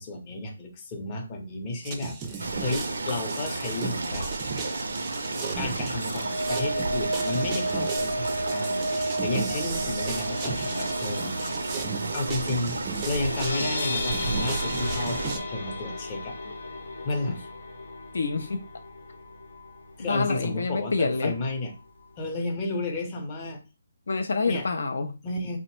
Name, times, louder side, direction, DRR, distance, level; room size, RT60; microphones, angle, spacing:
voice 1, 0.0-4.3 5.6-11.8 12.1-12.7 13.0-16.4 17.0-17.4 20.0-21.7 22.2-23.6 24.5-24.7 25.2-25.6, left 2 dB, 25° left, 0.6 m, -32 dB
sound 1, 1.8-15.4, right 5 dB, 20° right, 0.4 m, -37 dB
sound 2, 2.4-15.4, right 2 dB, 85° right, 0.5 m, -32 dB
sound 3, 5.8-19.9 20.3-20.5 20.8-20.9, equal, 90° left, 0.7 m, -34 dB
voice 2, 18.1-18.6 20.0-21.4 24.1-25.2, left 4 dB, 70° left, 0.4 m, -27 dB
2.9 x 2.1 x 3.0 m
hypercardioid pair, 165°, 0 cm